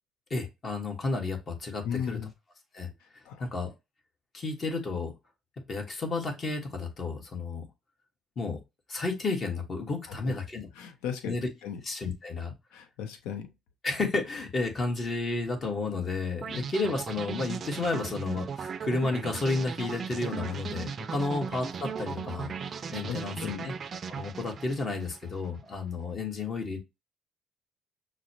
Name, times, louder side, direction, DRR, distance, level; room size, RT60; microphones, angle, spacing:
voice 1, 0.3-2.2 2.7-2.9 3.4-3.7 4.3-5.1 5.7-7.7 8.4-8.6 8.9-10.7 11.2-11.5 11.8-12.5 13.8-22.5 22.9-23.4 23.6-23.7 24.1-26.8, left 3 dB, 40° left, 1.3 m, -32 dB
voice 2, 1.8-2.3 3.2-3.5 10.1-10.4 10.8-11.8 12.7-13.5 16.6-16.7 20.4-20.5 22.7-23.7, left 8 dB, 85° left, 0.7 m, -37 dB
sound 1, 16.4-25.5, right 6 dB, 45° right, 0.4 m, -37 dB
5.9 x 2.1 x 2.8 m
supercardioid pair, 85°, 0 cm